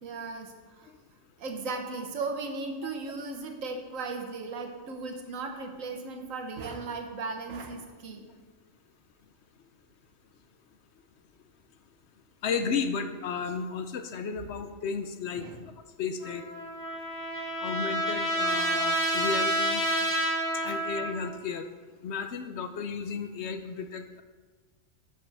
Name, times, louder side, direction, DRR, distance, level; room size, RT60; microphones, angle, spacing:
voice 1, 0.0-0.9 1.4-8.3 15.4-15.6 20.7-20.8, right 3 dB, 80° right, 3 dB, 1.4 m, -36 dB
voice 2, 12.4-15.5 16.0-16.5 17.6-19.9 20.5-21.7 22.0-24.2, left 5 dB, 65° left, 8 dB, 0.8 m, -33 dB
Trumpet, 16.2-21.4, right 1 dB, 25° left, 2.7 m, -29 dB
11.0 x 6.5 x 3.4 m, 1.4 s
omnidirectional pair, 1.4 m